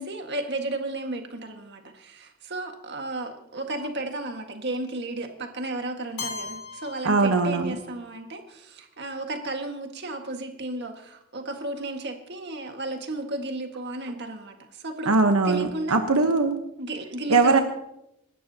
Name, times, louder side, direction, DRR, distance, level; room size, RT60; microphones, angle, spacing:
voice 1, 0.0-15.1 15.4-16.0 16.8-17.6, right 2 dB, 50° right, 4 dB, 1.7 m, -33 dB
Keyboard (musical), 6.2-8.1, left 4 dB, 85° left, 1.9 m, -38 dB
voice 2, 7.0-7.7 15.1-16.6 17.3-17.6, right 3 dB, 85° right, 5 dB, 1.1 m, -21 dB
27.5 x 13.0 x 2.9 m, 0.85 s
head